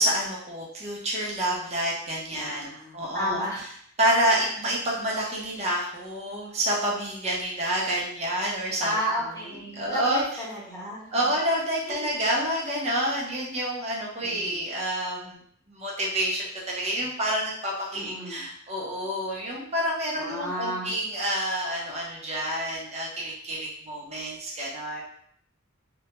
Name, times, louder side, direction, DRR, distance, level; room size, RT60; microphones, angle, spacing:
voice 1, 0.0-3.4 4.0-8.9 9.3-10.2 11.1-15.4 15.7-25.0, right 1 dB, 30° right, -4 dB, 0.6 m, -28 dB
voice 2, 2.3-3.6 8.8-11.3 11.9-12.1 14.2-14.6 17.9-18.5 20.2-20.9, equal, 15° left, -6 dB, 0.8 m, -33 dB
2.2 x 2.1 x 2.8 m, 0.65 s
head